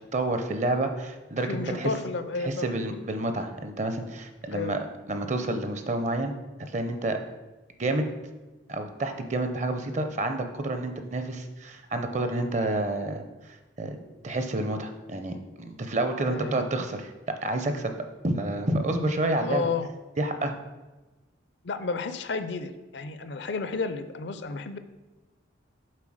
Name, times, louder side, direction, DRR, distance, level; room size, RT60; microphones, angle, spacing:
voice 1, 0.1-1.9 2.4-6.3 6.7-7.2 7.8-8.1 8.7-13.2 13.8-14.0 14.2-17.9 18.2-19.7 20.2-20.5, right 2 dB, 40° right, 7 dB, 0.6 m, -29 dB
voice 2, 1.5-2.8 4.5-4.8 16.2-16.6 19.4-19.9 21.6-24.8, left 4 dB, 65° left, 11 dB, 0.5 m, -31 dB
7.5 x 3.8 x 6.3 m, 1.1 s
head